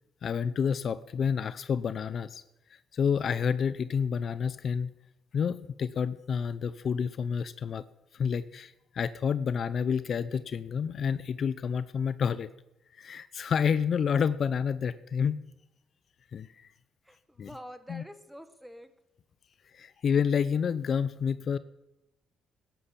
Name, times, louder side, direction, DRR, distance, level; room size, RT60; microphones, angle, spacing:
voice 1, 0.2-2.4 2.7-4.9 5.3-7.8 8.1-12.5 13.0-15.4 16.3-16.7 17.4-17.5 17.9-18.0 19.7-21.6, left 7 dB, 55° left, 15 dB, 0.6 m, -29 dB
voice 2, 17.0-18.9, equal, 5° right, 11 dB, 1.5 m, -47 dB
14.0 x 10.5 x 7.4 m, 0.89 s
cardioid pair, 90°, 0 cm